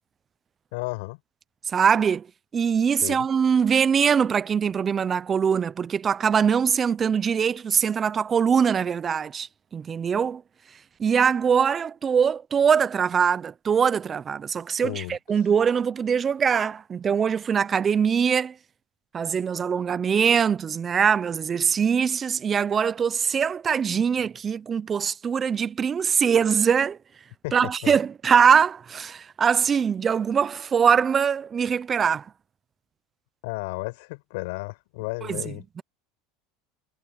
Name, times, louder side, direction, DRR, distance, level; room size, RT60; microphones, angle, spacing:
voice 1, 0.7-1.2 3.0-3.3 14.8-15.2 27.4-28.0 33.4-35.6, left 26 dB, 75° left, 6.0 m, -33 dB
voice 2, 1.7-2.3 2.5-10.4 11.0-18.5 19.1-27.0 27.5-32.2 35.2-35.8, right 7 dB, 30° right, 0.8 m, -22 dB
supercardioid pair, 100°, 0 cm